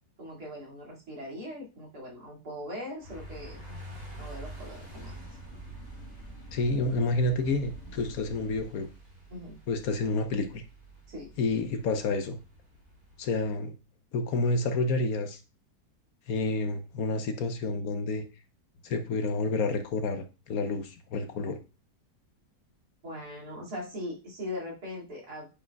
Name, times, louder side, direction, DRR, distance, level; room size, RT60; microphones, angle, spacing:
voice 1, 0.2-3.6 4.2-5.4 9.3-9.6 11.1-11.3 23.0-25.5, left 1 dB, 70° right, -3 dB, 2.8 m, -40 dB
sound 1, 3.0-13.5, right 1 dB, 40° right, 4.0 m, -47 dB
sound 2, 4.2-8.6, left 1 dB, 85° left, 2.3 m, -49 dB
voice 2, 6.5-8.9 9.7-10.6 11.4-12.4 13.2-13.7 14.1-15.4 16.3-18.2 18.8-21.6, left 3 dB, 65° left, 8 dB, 1.1 m, -29 dB
8.7 x 4.9 x 2.2 m, 0.30 s
omnidirectional pair, 1.8 m